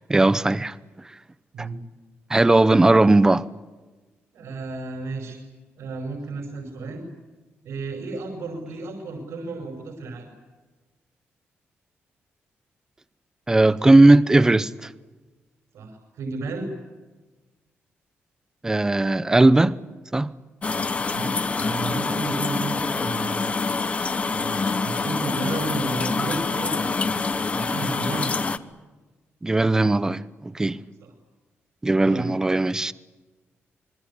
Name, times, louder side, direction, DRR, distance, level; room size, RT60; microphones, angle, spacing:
voice 1, 0.1-0.7 1.6-1.7 2.3-3.4 13.5-14.9 18.6-19.7 20.1-20.3 29.4-30.8 31.8-32.9, right 2 dB, 15° right, 0.8 m, -18 dB
voice 2, 4.3-5.4 5.8-7.0 7.6-10.3 15.7-16.7 21.1-23.6 24.3-27.2 27.5-28.4 31.0-31.1 32.1-32.3, right 3 dB, 85° right, 5.3 m, -33 dB
sound 1, 20.6-28.6, left 4 dB, 30° left, 1.1 m, -26 dB
26.0 x 22.5 x 8.5 m
cardioid pair, 135°, 5 cm